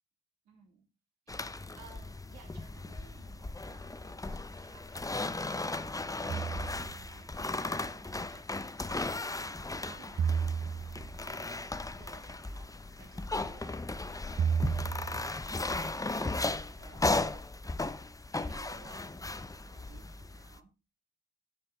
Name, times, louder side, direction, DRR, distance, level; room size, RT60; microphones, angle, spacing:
voice 1, 0.4-0.9 1.3-5.6 5.9-8.4 9.4-9.5 9.8-12.7 13.0-13.8 14.1-15.0 15.5-17.5 18.3-20.7, right 5 dB, 70° right, 2 dB, 3.4 m, -58 dB
sound 1, 1.3-20.6, left 2 dB, 10° left, 0.8 m, -36 dB
sound 2, 6.3-7.1 10.2-11.2 14.4-15.3, right 7 dB, 35° right, 0.5 m, -32 dB
12.5 x 5.7 x 3.8 m, 0.29 s
hypercardioid pair, 55°, 29 cm